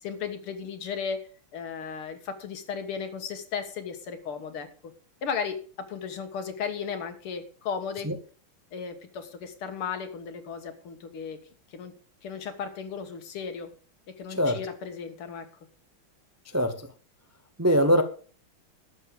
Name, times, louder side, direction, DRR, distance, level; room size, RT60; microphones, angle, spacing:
voice 1, 0.0-1.2 1.5-4.9 5.2-8.1 8.7-11.4 11.7-12.0 12.2-13.7 14.1-15.5, left 6 dB, 85° left, 8 dB, 2.4 m, -35 dB
voice 2, 14.3-14.6 16.5-16.8 17.6-18.0, equal, 20° right, 7 dB, 0.4 m, -22 dB
12.0 x 7.3 x 6.8 m, 0.40 s
omnidirectional pair, 2.3 m